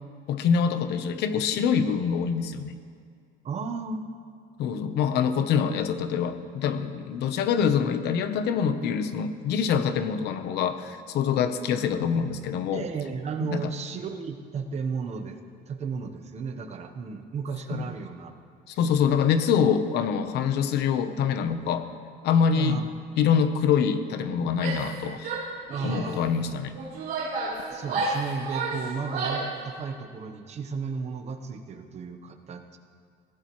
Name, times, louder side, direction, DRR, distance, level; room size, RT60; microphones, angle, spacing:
voice 1, 0.3-2.7 4.6-12.9 13.4-13.7 17.7-17.9 18.7-21.9 22.2-22.8 23.2-25.3 25.8-26.7, left 7 dB, 65° left, 10 dB, 1.0 m, -25 dB
voice 2, 3.4-4.0 12.7-15.4 15.7-18.3 22.5-22.9 25.7-26.3 27.7-32.8, right 5 dB, 35° right, 6 dB, 1.1 m, -34 dB
Female speech woman speaking / Yell, 24.5-25.0 25.2-26.1 26.7-29.6, right 3 dB, 55° right, 4.2 m, -31 dB
22.5 x 16.5 x 3.2 m, 2.2 s
cardioid pair, 155°, 19 cm